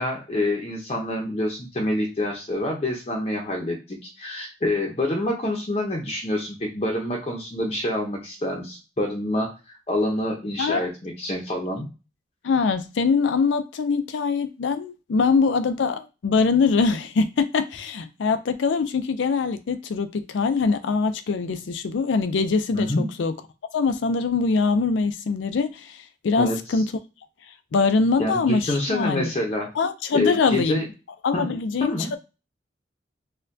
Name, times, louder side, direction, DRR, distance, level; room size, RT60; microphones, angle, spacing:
voice 1, 0.0-11.9 22.7-23.0 26.4-26.6 28.2-29.7 30.1-30.9 31.3-31.5 31.8-32.1, left 1 dB, 35° left, 0.6 m, -27 dB
voice 2, 10.6-10.9 12.4-23.3 23.7-26.9 27.7-29.3 29.8-30.8 31.2-32.2, left 4 dB, 85° left, 0.4 m, -23 dB
4.2 x 2.2 x 2.6 m
head